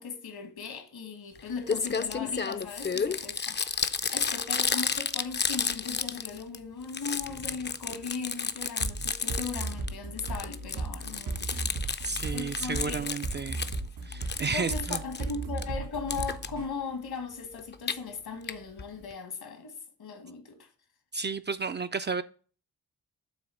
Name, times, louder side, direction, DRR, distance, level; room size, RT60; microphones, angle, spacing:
voice 1, 0.0-13.1 14.5-20.7, left 5 dB, 70° left, 1.6 m, -38 dB
Crumpling crinkling, 1.3-1.4 1.7-6.6 6.8-9.9 10.2-13.8 14.1-15.6 16.1-16.5 17.6-17.9 18.5-18.6 18.8-18.9 19.1-19.2, left 5 dB, 30° left, 0.5 m, -32 dB
sound 1, 8.8-16.6, right 3 dB, 85° right, 2.5 m, -35 dB
voice 2, 12.0-13.6 14.0-15.0 21.1-22.2, right 4 dB, 30° right, 0.4 m, -32 dB
7.7 x 2.8 x 6.0 m
cardioid pair, 55°, 39 cm